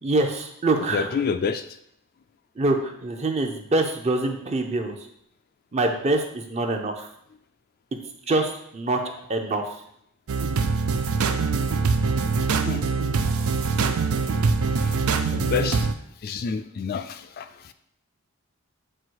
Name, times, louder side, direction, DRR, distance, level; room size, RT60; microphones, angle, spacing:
voice 1, 0.0-1.2 2.6-4.9 5.7-7.1 8.3-9.0 9.3-9.7, right 2 dB, 30° right, 4 dB, 0.6 m, -25 dB
voice 2, 0.9-1.6 12.7-12.9 14.8-15.0 15.3-15.9 16.2-17.7, left 6 dB, 45° left, 9 dB, 0.3 m, -28 dB
sound 1, 10.3-15.9, right 4 dB, 80° right, 0.5 m, -23 dB
7.5 x 2.8 x 4.6 m, 0.73 s
head